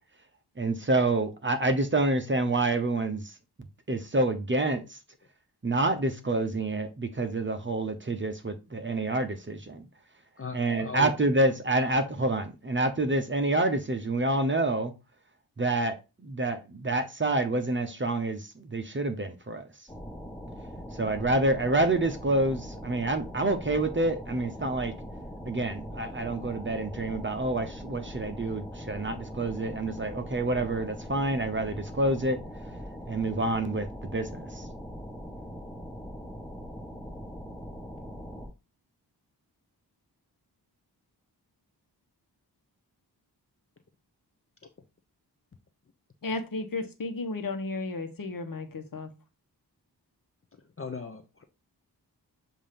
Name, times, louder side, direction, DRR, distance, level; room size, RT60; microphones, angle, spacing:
voice 1, 0.6-3.3 3.9-5.0 5.6-9.9 10.5-14.9 15.6-19.7 20.9-24.9 25.5-32.4 33.1-34.7, right 2 dB, 30° right, 0.8 m, -28 dB
voice 2, 10.4-11.1 50.5-51.4, left 5 dB, 35° left, 0.7 m, -39 dB
sound 1, 19.9-38.5, equal, 10° left, 1.6 m, -41 dB
voice 3, 46.2-49.1, left 3 dB, 55° left, 1.1 m, -34 dB
7.3 x 2.7 x 5.1 m
wide cardioid pair, 85°, 40 cm